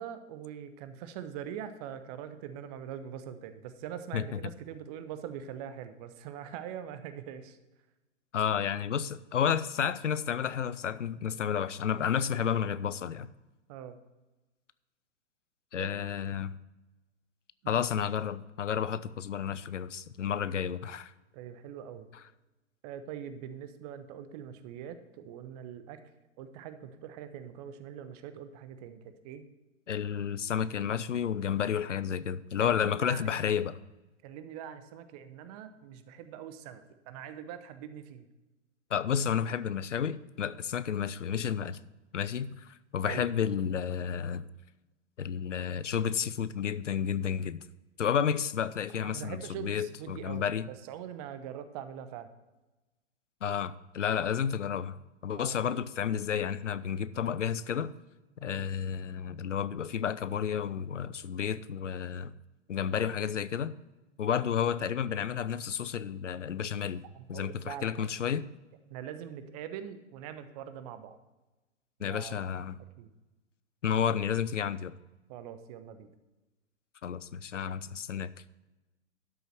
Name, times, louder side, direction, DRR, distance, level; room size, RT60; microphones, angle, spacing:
voice 1, 0.0-7.6 13.7-14.0 15.7-15.9 17.6-17.8 21.3-22.1 22.8-26.0 26.4-29.4 32.6-33.3 34.2-38.3 43.0-43.3 49.0-52.3 55.3-55.6 58.4-58.6 67.1-68.1 68.9-71.2 72.1-72.4 73.0-73.1 75.3-76.1, right 9 dB, 35° right, 11 dB, 0.9 m, -43 dB
voice 2, 8.3-13.3 15.7-16.5 17.7-21.1 29.9-33.8 38.9-41.8 42.1-44.5 45.2-47.6 48.0-50.7 53.4-57.9 58.4-62.3 62.7-63.7 64.2-67.0 67.3-68.4 72.0-72.8 73.8-74.9 77.0-78.3, left 8 dB, 80° left, 16 dB, 0.6 m, -31 dB
12.0 x 6.8 x 4.5 m, 1.1 s
figure-of-eight pair, 110°, 37 cm